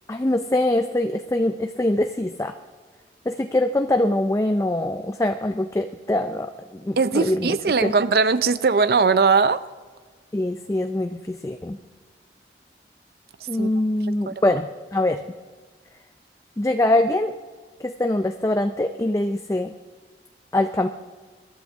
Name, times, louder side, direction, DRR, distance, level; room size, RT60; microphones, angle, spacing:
voice 1, 0.1-2.5 3.3-7.6 7.8-7.9 10.3-11.8 13.5-15.2 16.6-17.3 17.8-19.7 20.5-20.9, left 1 dB, 15° left, 7 dB, 0.4 m, -23 dB
voice 2, 7.0-9.6 13.6-13.7 14.3-14.4, right 4 dB, 60° right, 15 dB, 0.5 m, -20 dB
22.0 x 12.5 x 3.5 m, 1.5 s
head